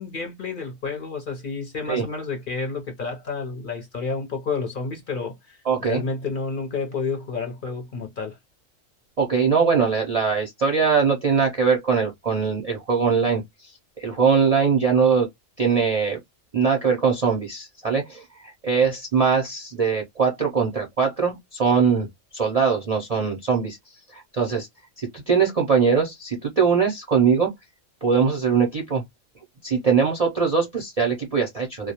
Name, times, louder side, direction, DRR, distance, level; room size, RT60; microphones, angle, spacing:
voice 1, 0.0-5.6 5.8-8.4, left 4 dB, 55° left, 0.6 m, -30 dB
voice 2, 5.7-6.0 9.2-15.3 15.6-16.2 16.5-22.1 22.3-23.8 24.1-24.7 25.0-27.5 28.0-29.0 29.6-31.9, right 6 dB, 50° right, 0.4 m, -21 dB
2.2 x 2.0 x 2.7 m
omnidirectional pair, 1.3 m